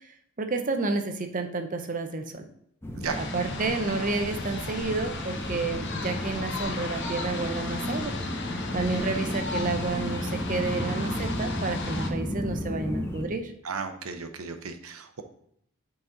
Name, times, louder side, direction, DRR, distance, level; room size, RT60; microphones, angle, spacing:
voice 1, 0.4-2.4 3.2-8.2 8.7-13.5, right 3 dB, 40° right, 6 dB, 0.7 m, -30 dB
sound 1, 2.8-13.3, left 1 dB, 10° left, 0.7 m, -33 dB
sound 2, 3.1-12.1, left 3 dB, 55° left, 0.8 m, -37 dB
voice 2, 13.6-15.2, right 5 dB, 90° right, 7 dB, 0.7 m, -34 dB
8.4 x 4.1 x 3.9 m, 0.71 s
head